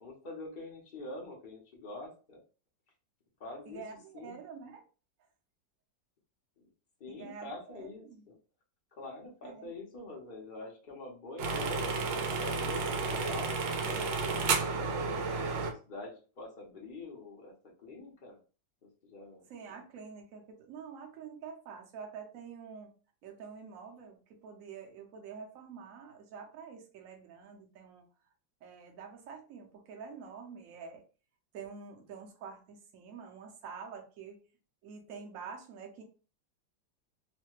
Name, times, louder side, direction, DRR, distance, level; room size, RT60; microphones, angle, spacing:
voice 1, 0.0-2.4 3.4-3.8 4.1-4.4 6.6-6.7 7.0-8.4 9.0-14.0 14.7-17.5 17.8-18.4 18.8-19.8, left 2 dB, 45° left, -1 dB, 0.6 m, -45 dB
voice 2, 3.7-4.8 7.1-8.2 9.4-9.7 19.5-22.9 23.2-28.0 28.6-31.0 31.5-34.4 34.8-36.0, right 6 dB, 60° right, 2 dB, 1.0 m, -47 dB
sound 1, 11.4-15.7, right 4 dB, 85° right, 1.3 m, -32 dB
3.2 x 2.1 x 3.0 m, 0.36 s
omnidirectional pair, 2.0 m